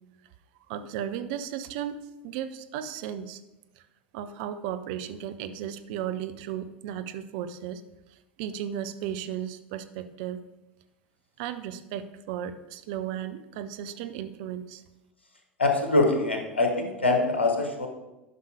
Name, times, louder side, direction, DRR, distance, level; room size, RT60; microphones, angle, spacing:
voice 1, 0.7-3.4 3.7-3.8 4.1-7.8 8.1-10.4 11.4-14.8, right 10 dB, 55° right, 10 dB, 0.7 m, -35 dB
voice 2, 15.6-17.9, left 2 dB, 80° left, 4 dB, 1.3 m, -24 dB
11.0 x 5.7 x 5.0 m, 0.99 s
figure-of-eight pair, 75°, 6 cm